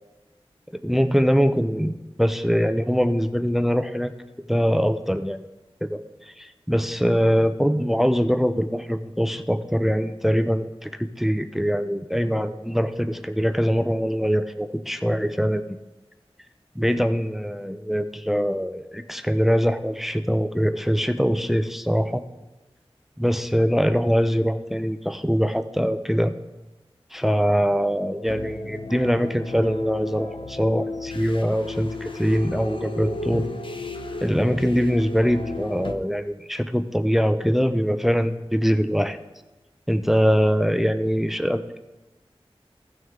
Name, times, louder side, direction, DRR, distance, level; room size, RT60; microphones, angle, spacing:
voice 1, 0.7-4.1 4.5-5.4 5.8-6.0 6.3-15.6 16.8-22.2 23.2-26.3 27.1-33.5 34.2-39.2 39.9-41.8, equal, 5° right, 10 dB, 0.5 m, -23 dB
sound 1, 28.3-35.9, left 3 dB, 55° left, 0.8 m, -34 dB
15.5 x 6.4 x 3.7 m, 1.1 s
wide cardioid pair, 60°, 10 cm